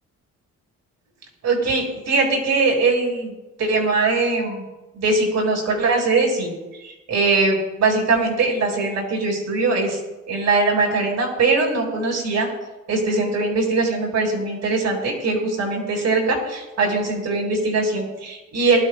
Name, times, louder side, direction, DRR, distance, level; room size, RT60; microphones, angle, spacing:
voice 1, 1.4-3.3 3.6-4.6 4.9-6.5 6.8-10.0 10.3-12.5 12.9-18.8, right 3 dB, 65° right, 1 dB, 5.0 m, -21 dB
24.0 x 12.0 x 2.2 m, 1.1 s
cardioid pair, 90°, 30 cm